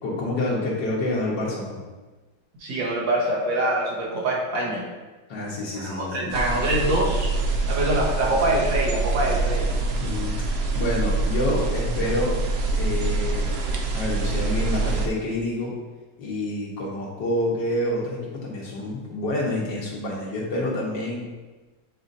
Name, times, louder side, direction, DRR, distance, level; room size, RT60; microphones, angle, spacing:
voice 1, 0.0-1.8 5.3-6.4 10.0-10.4 10.8-12.4 12.7-13.5 13.9-15.7 16.2-21.3, left 1 dB, 70° left, -4 dB, 2.0 m, -28 dB
voice 2, 2.6-4.8 5.7-7.3 7.7-9.7, right 1 dB, 75° right, -4 dB, 2.0 m, -24 dB
sound 1, 6.3-15.1, right 3 dB, 90° right, 0.5 m, -25 dB
8.8 x 4.3 x 2.7 m, 1.2 s
omnidirectional pair, 2.0 m